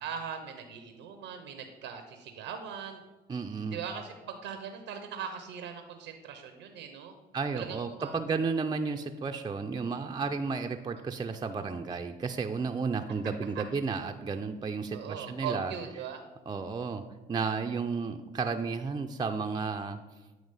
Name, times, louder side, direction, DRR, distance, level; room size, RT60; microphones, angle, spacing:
voice 1, 0.0-3.0 3.7-7.1 7.5-8.2 14.9-16.2, right 7 dB, 85° right, 6 dB, 0.7 m, -40 dB
voice 2, 3.3-3.8 7.3-15.7 16.5-17.0 17.3-20.0, right 4 dB, 20° right, 4 dB, 0.4 m, -32 dB
8.8 x 3.0 x 5.5 m, 1.2 s
supercardioid pair, 60°, 19 cm